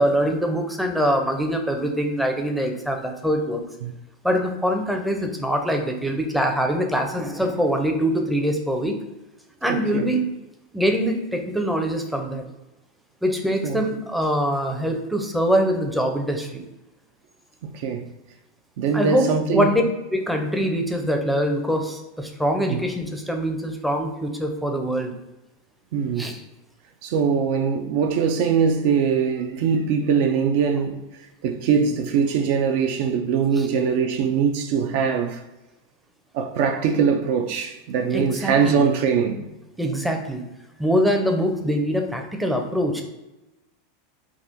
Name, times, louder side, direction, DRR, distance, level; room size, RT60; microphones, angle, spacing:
voice 1, 0.0-3.6 4.2-8.9 9.6-10.2 10.7-12.4 13.2-16.6 18.9-19.8 20.1-25.1 26.2-26.4 33.6-33.7 38.1-38.9 39.8-40.4 40.8-43.0, equal, ahead, 0.5 m, -23 dB
voice 2, 9.7-10.1 13.6-13.8 17.6-18.1 18.8-19.7 22.7-22.8 25.9-26.4 27.0-31.0 31.4-35.4 36.3-39.5, right 6 dB, 60° right, 0.3 m, -22 dB
3.5 x 2.3 x 2.6 m
hypercardioid pair, 105°, 0 cm